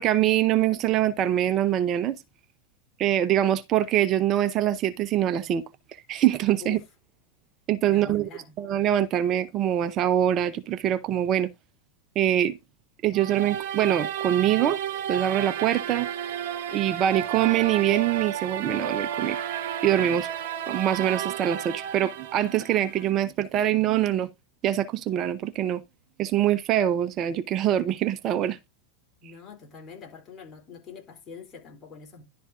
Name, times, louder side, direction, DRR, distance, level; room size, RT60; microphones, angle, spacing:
voice 1, 0.0-2.2 3.0-5.6 6.1-6.8 7.7-8.3 8.6-11.5 12.2-12.6 13.0-14.8 15.1-16.1 16.7-19.4 19.8-20.3 20.7-24.3 24.6-25.8 26.2-28.6, right 11 dB, 40° right, 0.7 m, -24 dB
voice 2, 7.9-8.6 29.2-32.2, left 6 dB, 30° left, 3.9 m, -44 dB
sound 1, 13.1-23.1, right 9 dB, 60° right, 1.4 m, -32 dB
11.5 x 4.2 x 3.7 m
hypercardioid pair, 100°, 0 cm